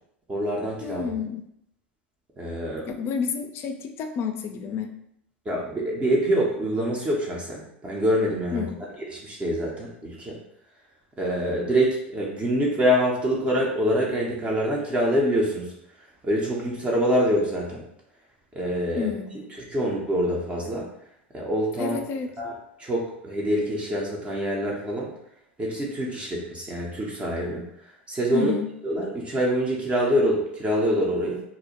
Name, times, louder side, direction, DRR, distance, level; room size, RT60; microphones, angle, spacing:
voice 1, 0.3-1.0 2.4-2.9 5.5-8.7 9.1-10.4 11.2-15.7 16.2-17.8 18.5-20.9 21.3-22.0 22.4-25.1 25.6-27.7 28.1-28.5 28.8-31.4, equal, 20° right, -3 dB, 0.6 m, -25 dB
voice 2, 0.8-1.4 3.0-4.9 8.5-8.9 19.0-19.5 21.8-22.3 28.3-28.7, left 6 dB, 40° left, 6 dB, 0.4 m, -30 dB
2.5 x 2.1 x 2.9 m, 0.75 s
hypercardioid pair, 95°, 7 cm